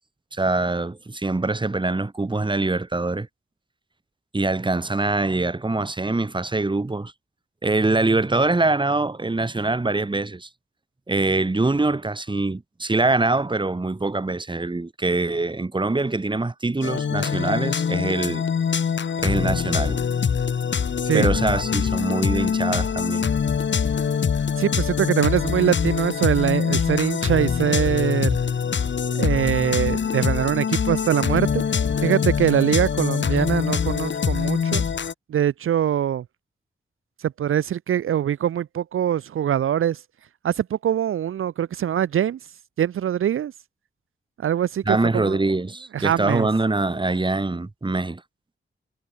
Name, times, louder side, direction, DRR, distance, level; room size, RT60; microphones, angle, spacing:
voice 1, 0.3-3.3 4.3-7.1 7.6-10.5 11.1-18.4 19.2-20.0 21.1-23.3 44.9-48.2, right 2 dB, 20° right, 1.3 m, -24 dB
sound 1, 16.8-35.1, left 6 dB, 60° left, 1.0 m, -24 dB
voice 2, 24.6-28.4 29.1-31.6 32.0-34.8 35.3-36.2 37.2-40.0 40.4-42.4 42.8-43.5 44.4-45.4 45.9-46.5, right 10 dB, 75° right, 0.5 m, -23 dB
cardioid pair, 70°, 21 cm